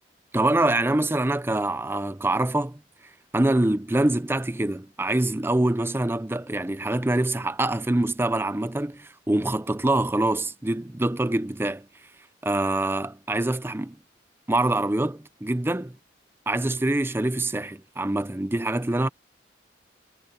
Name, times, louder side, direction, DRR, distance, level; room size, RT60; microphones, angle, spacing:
voice 1, 0.3-2.8 3.3-11.9 12.4-14.0 14.5-15.9 16.5-19.1, right 1 dB, 10° right, 0.5 m, -25 dB
head